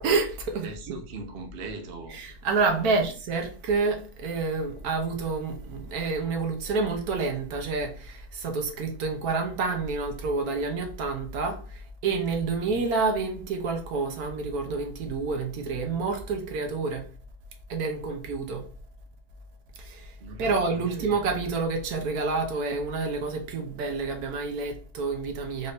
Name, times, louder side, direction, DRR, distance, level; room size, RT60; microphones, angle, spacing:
voice 1, 0.0-1.0 2.1-17.1 17.7-18.7 19.8-25.7, right 4 dB, 70° right, 1.2 m, -28 dB
voice 2, 0.6-2.2 2.8-3.1 12.6-12.8 20.2-21.4, right 4 dB, 50° right, 0.7 m, -40 dB
4.1 x 2.6 x 3.4 m
omnidirectional pair, 1.7 m